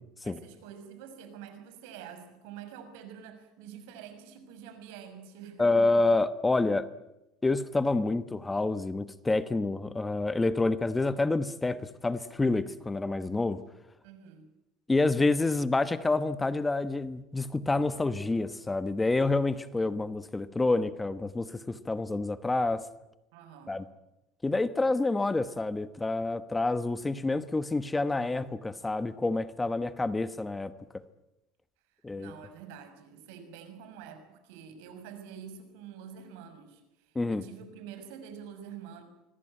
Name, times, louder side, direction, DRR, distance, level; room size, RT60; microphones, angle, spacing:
voice 1, 0.2-5.9 14.0-14.5 23.3-23.8 31.9-39.0, right 8 dB, 80° right, 9 dB, 6.2 m, -47 dB
voice 2, 5.6-6.9 7.4-13.6 14.9-22.9 23.7-23.8 24.4-31.0 32.0-32.3 37.1-37.4, left 2 dB, 10° left, 12 dB, 1.1 m, -28 dB
25.5 x 21.0 x 8.9 m, 0.93 s
cardioid pair, 135°, 0 cm